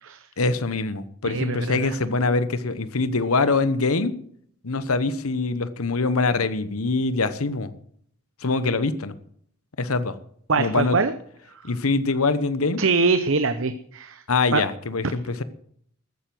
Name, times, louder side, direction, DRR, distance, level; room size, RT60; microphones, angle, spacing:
voice 1, 0.4-4.1 4.6-7.7 8.4-9.1 9.8-10.2 10.6-11.0 11.6-12.8 14.3-15.4, left 3 dB, 80° left, 14 dB, 1.1 m, -24 dB
voice 2, 1.2-2.0 10.5-11.1 12.8-14.2 14.5-14.6, right 4 dB, 60° right, 10 dB, 0.8 m, -23 dB
14.0 x 9.3 x 7.7 m, 0.64 s
head